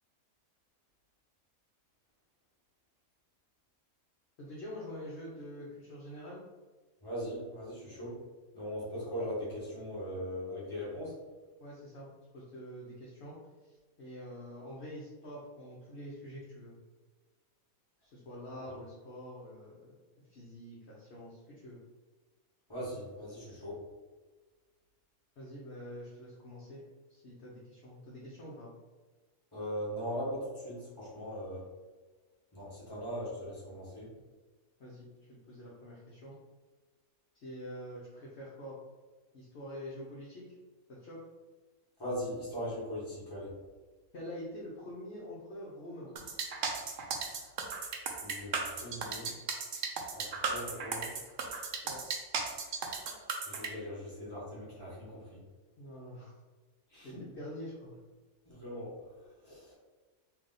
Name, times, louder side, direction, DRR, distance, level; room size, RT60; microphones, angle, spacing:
voice 1, 4.4-6.4 11.6-16.8 18.0-19.9 20.3-21.8 25.4-26.8 27.1-28.7 34.8-36.4 37.3-38.8 39.3-40.5 40.9-41.2 44.1-46.1 51.8-52.0 55.8-56.3 57.0-58.0, equal, 55° left, -6 dB, 0.9 m, -46 dB
voice 2, 7.0-8.1 8.5-11.1 22.7-23.7 29.5-31.6 32.5-34.1 42.0-43.5 48.2-49.3 50.1-51.1 53.4-55.4 56.9-57.2 58.4-58.9 59.4-59.7, equal, 15° left, -8 dB, 1.4 m, -39 dB
sound 1, 46.2-53.7, right 5 dB, 75° right, 0.5 m, -35 dB
3.5 x 2.6 x 3.7 m, 1.3 s
omnidirectional pair, 1.5 m